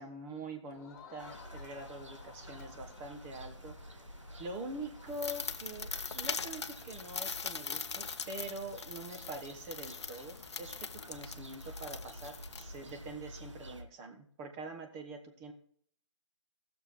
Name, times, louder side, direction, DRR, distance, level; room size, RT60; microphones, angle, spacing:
voice 1, 0.0-3.8 4.4-15.5, right 2 dB, 15° right, 5 dB, 0.9 m, -44 dB
Crowd, 0.7-6.0, left 5 dB, 35° left, 1.6 m, -56 dB
sound 1, 1.2-13.8, equal, 80° right, 1.5 m, -50 dB
sound 2, 5.1-13.1, left 5 dB, 65° left, 0.7 m, -41 dB
16.0 x 7.0 x 3.1 m, 0.62 s
figure-of-eight pair, 150°, 15 cm